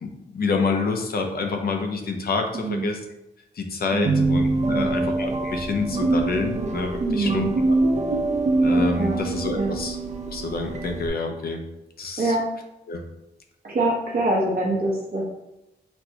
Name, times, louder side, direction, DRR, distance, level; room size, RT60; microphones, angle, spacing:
voice 1, 0.0-3.0 3.6-7.5 8.6-10.0 10.3-11.6 12.0-12.3 12.9-13.0, left 4 dB, 60° left, 4 dB, 0.5 m, -27 dB
voice 2, 2.5-2.9 3.9-4.3 4.7-5.0 7.0-7.5 9.0-9.2 9.5-9.7 12.2-12.4 13.6-15.2, right 2 dB, 60° right, -4 dB, 0.9 m, -25 dB
sound 1, 4.1-11.1, right 2 dB, 40° right, 0.4 m, -24 dB
4.2 x 2.2 x 2.8 m, 0.90 s
wide cardioid pair, 95°, 18 cm